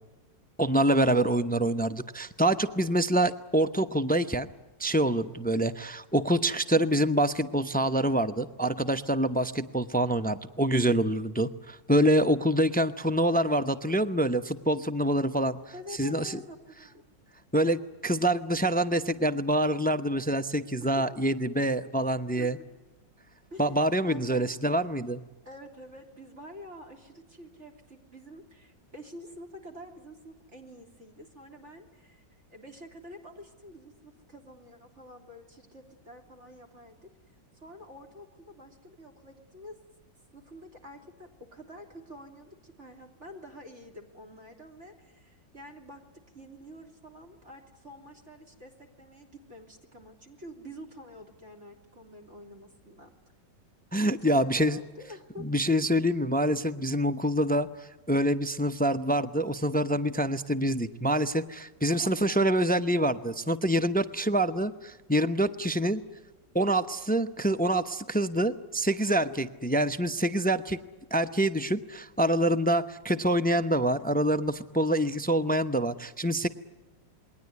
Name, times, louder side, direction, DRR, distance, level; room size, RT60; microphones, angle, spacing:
voice 1, 0.6-4.5 4.8-15.6 16.0-16.4 17.5-22.6 23.6-25.2 53.9-54.8 55.4-66.0 66.5-70.8 71.1-76.5, right 1 dB, 10° left, 12 dB, 0.4 m, -26 dB
voice 2, 15.7-17.1 20.8-21.4 22.4-22.5 23.5-24.6 25.4-32.2 32.5-37.1 37.5-39.8 40.3-46.0 46.3-48.7 49.0-53.2 54.2-55.5 62.0-62.4, equal, 40° right, 5 dB, 3.5 m, -48 dB
28.0 x 21.5 x 9.6 m, 1.1 s
omnidirectional pair, 1.9 m